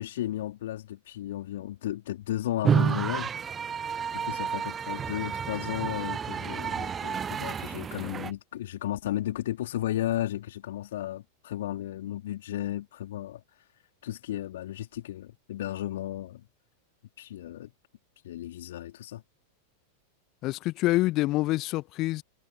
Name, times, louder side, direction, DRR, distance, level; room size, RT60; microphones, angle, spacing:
voice 1, 0.0-3.3 4.1-13.7 14.0-16.4 17.2-17.7 18.2-19.2, left 13 dB, 60° left, 3.7 m, -34 dB
sound 1, 2.6-8.3, right 7 dB, 20° right, 0.4 m, -30 dB
voice 2, 20.4-22.2, left 18 dB, 40° left, 1.1 m, -26 dB
figure-of-eight pair, 90°, 0 cm